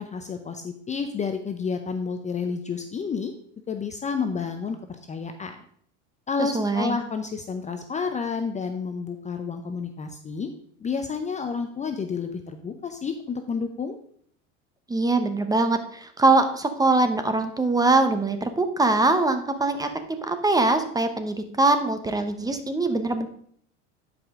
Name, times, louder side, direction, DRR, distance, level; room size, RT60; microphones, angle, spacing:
voice 1, 0.0-3.3 3.7-5.6 6.3-10.5 10.8-14.0, left 5 dB, 20° left, 7 dB, 0.6 m, -30 dB
voice 2, 6.4-7.0 14.9-23.3, right 2 dB, 10° right, 8 dB, 0.8 m, -23 dB
10.5 x 5.1 x 3.6 m, 0.63 s
supercardioid pair, 110°, 36 cm